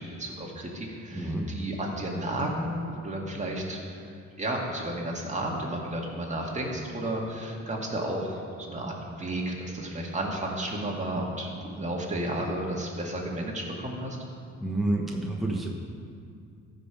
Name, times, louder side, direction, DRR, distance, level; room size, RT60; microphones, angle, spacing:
voice 1, 0.0-4.1 4.4-14.2, right 1 dB, 25° right, -2 dB, 2.1 m, -32 dB
voice 2, 1.1-1.5 14.6-15.7, right 2 dB, ahead, -1 dB, 1.2 m, -29 dB
14.0 x 5.3 x 5.2 m, 2.3 s
cardioid pair, 90°, 30 cm